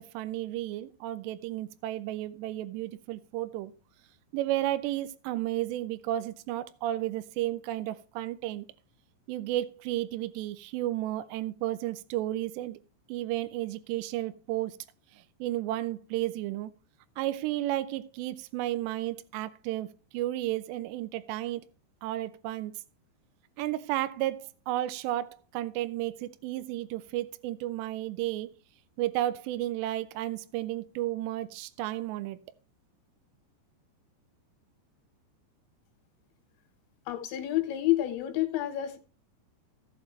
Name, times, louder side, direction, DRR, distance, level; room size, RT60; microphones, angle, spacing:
voice 1, 0.0-3.7 4.3-8.7 9.3-12.8 13.1-14.8 15.4-16.7 17.2-21.7 22.0-22.8 23.6-28.5 29.0-32.4, right 14 dB, 80° right, 2.6 m, -33 dB
voice 2, 37.1-39.0, left 14 dB, 75° left, 3.3 m, -29 dB
14.5 x 7.3 x 3.2 m
omnidirectional pair, 5.3 m